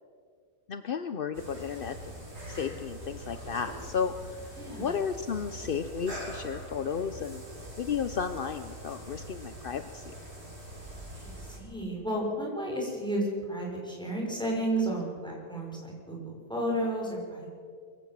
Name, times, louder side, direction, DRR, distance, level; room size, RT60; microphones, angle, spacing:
voice 1, 0.7-2.2 2.5-4.4 4.8-7.4 7.8-10.0, left 6 dB, 50° left, 10 dB, 0.6 m, -33 dB
sound 1, 1.3-11.6, right 1 dB, 70° right, 6.4 m, -43 dB
voice 2, 4.6-5.0 11.2-17.5, right 1 dB, ahead, -2 dB, 5.8 m, -32 dB
23.0 x 15.5 x 7.5 m, 2.1 s
omnidirectional pair, 1.8 m